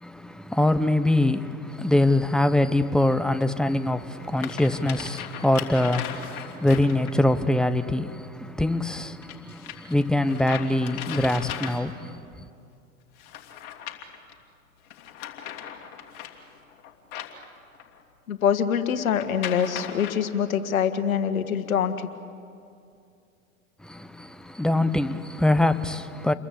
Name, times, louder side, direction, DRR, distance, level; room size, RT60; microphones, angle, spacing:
voice 1, 0.0-12.2 23.8-26.3, left 1 dB, ahead, 0.8 m, -24 dB
sound 1, 1.7-1.8 3.4-3.5 4.1-7.3 9.2-12.1 13.2-14.3 14.9-18.0 19.0-20.1, left 10 dB, 50° left, 3.0 m, -38 dB
voice 2, 18.3-22.1, left 8 dB, 70° left, 1.9 m, -24 dB
29.0 x 22.5 x 8.3 m
hypercardioid pair, 95°, 43 cm